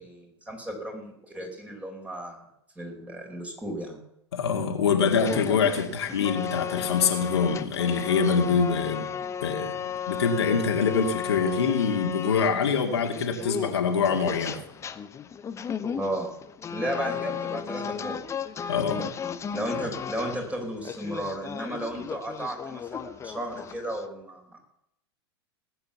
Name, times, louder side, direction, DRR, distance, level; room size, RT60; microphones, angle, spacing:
voice 1, 0.0-2.4 2.8-4.0 16.0-16.3 16.7-18.2 19.5-24.6, right 1 dB, 10° right, 2 dB, 4.6 m, -34 dB
voice 2, 4.3-9.1 9.4-9.8 10.1-14.6 18.7-19.0, left 6 dB, 70° left, 3 dB, 2.2 m, -24 dB
sound 1, 5.1-24.0, left 8 dB, 20° left, 0.9 m, -35 dB
19.0 x 8.2 x 7.0 m, 0.78 s
hypercardioid pair, 95°, 14 cm